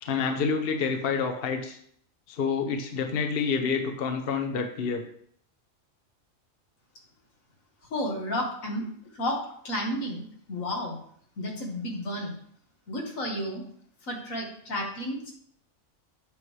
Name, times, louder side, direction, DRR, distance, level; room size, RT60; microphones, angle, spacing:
voice 1, 0.0-1.8 2.3-5.0, left 5 dB, 50° left, 5 dB, 0.9 m, -28 dB
voice 2, 7.9-8.9 9.1-11.0 11.4-12.3 12.9-13.6 14.0-15.3, left 1 dB, 85° left, 0 dB, 1.9 m, -32 dB
8.6 x 6.2 x 3.2 m, 0.63 s
omnidirectional pair, 1.4 m